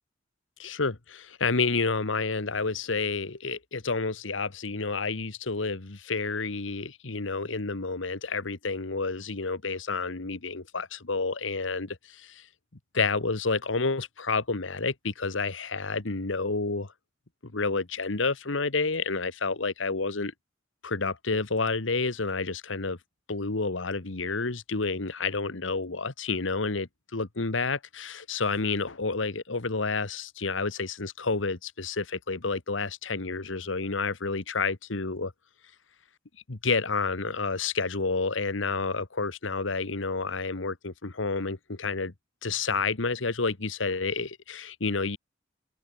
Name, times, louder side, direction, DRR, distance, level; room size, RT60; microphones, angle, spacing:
voice 1, 0.6-12.5 12.9-16.9 17.4-20.3 20.8-23.0 23.3-35.3 36.5-42.1 42.4-45.2, left 4 dB, 85° left, 1.5 m, -30 dB
head